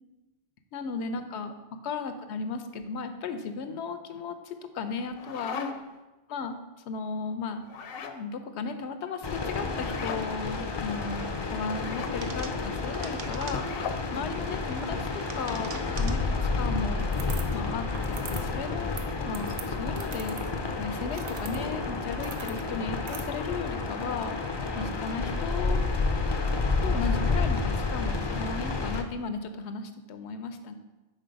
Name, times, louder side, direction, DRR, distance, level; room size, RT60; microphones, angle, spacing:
voice 1, 0.7-1.5 1.8-5.7 6.3-6.6 6.9-7.8 8.1-13.8 14.1-17.0 17.5-19.0 19.2-20.4 20.8-24.3 24.7-25.8 26.8-30.7, left 4 dB, 85° left, 8 dB, 0.9 m, -35 dB
sound 1, 4.9-6.0 7.6-8.2 9.8-10.3 11.7-12.2 13.4-14.1, left 6 dB, 65° left, 0.7 m, -38 dB
sound 2, 9.2-29.0, left 3 dB, 45° left, 0.3 m, -30 dB
sound 3, 12.2-14.0 14.8-16.3 17.0-17.6 17.9-18.5 18.8-23.2, right 5 dB, 55° right, 0.6 m, -43 dB
5.4 x 4.0 x 5.1 m, 1.1 s
omnidirectional pair, 1.1 m